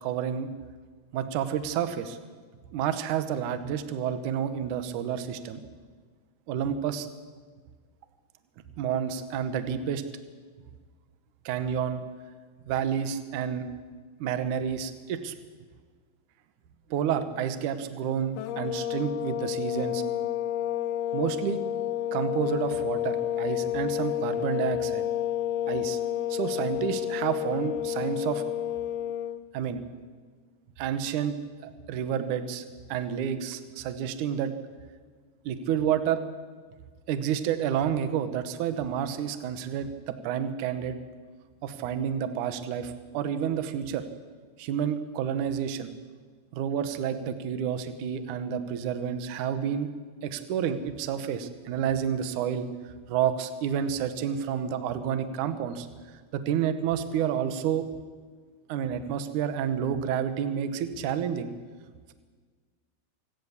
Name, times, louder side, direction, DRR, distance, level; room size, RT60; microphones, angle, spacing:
voice 1, 0.0-0.5 1.1-2.2 2.7-5.6 6.5-7.1 8.8-10.0 11.5-12.0 12.7-13.7 14.2-15.3 16.9-20.0 21.1-21.6 22.1-25.0 25.7-26.0 26.3-28.4 29.5-29.8 30.8-31.4 31.6-32.6 32.9-34.5 35.5-36.2 37.1-41.0 41.6-44.0 44.6-45.9 46.5-49.9 50.2-52.7 53.1-57.9 58.7-61.5, right 8 dB, 65° right, 10 dB, 2.4 m, -29 dB
sound 1, 18.4-29.4, left 11 dB, 80° left, 2.9 m, -30 dB
27.0 x 16.5 x 7.3 m, 1.5 s
omnidirectional pair, 4.4 m